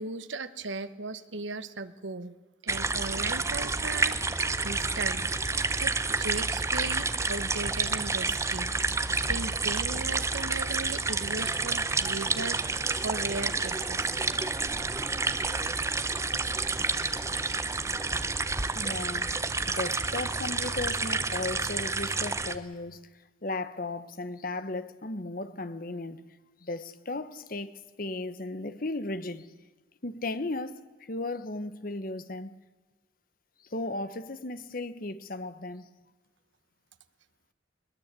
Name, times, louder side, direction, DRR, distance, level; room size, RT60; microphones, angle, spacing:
voice 1, 0.0-2.3 2.6-4.2 4.6-5.3 5.8-5.9 6.2-8.7 9.3-12.6 13.0-14.2, right 3 dB, 75° right, 1.1 m, -37 dB
sound 1, 2.7-22.5, right 3 dB, 15° right, 0.8 m, -29 dB
voice 2, 18.7-19.3 19.7-23.1 23.4-26.2 26.6-29.5 30.0-32.6 33.7-35.9, left 2 dB, 45° left, 1.1 m, -35 dB
22.0 x 19.5 x 8.2 m
head